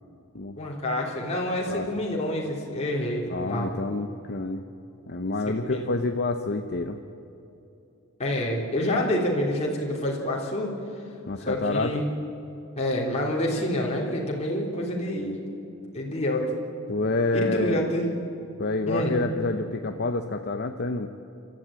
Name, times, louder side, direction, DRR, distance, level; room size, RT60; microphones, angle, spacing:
voice 1, 0.6-3.7 5.5-5.9 8.2-10.7 11.4-12.1 12.8-15.4 15.9-16.5 17.3-18.1 18.9-19.2, left 1 dB, 30° left, -3 dB, 3.3 m, -27 dB
voice 2, 3.3-4.6 5.1-7.0 11.3-12.1 16.9-17.9 18.6-21.1, left 3 dB, 50° left, 5 dB, 0.8 m, -28 dB
28.5 x 13.5 x 8.9 m, 2.8 s
head